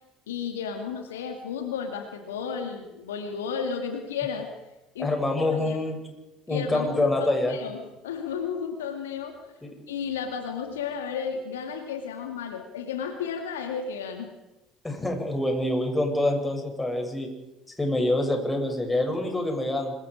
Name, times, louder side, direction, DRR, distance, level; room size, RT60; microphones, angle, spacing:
voice 1, 0.3-4.5 4.9-5.2 5.5-5.8 6.5-7.1 7.5-9.5 9.9-14.3, left 6 dB, 75° left, 5 dB, 2.3 m, -33 dB
voice 2, 5.0-6.0 6.5-7.5 9.6-9.7 14.8-17.3 17.8-19.9, left 1 dB, 15° left, 2 dB, 7.2 m, -26 dB
27.0 x 23.0 x 5.0 m, 1.0 s
figure-of-eight pair, 60°, 0 cm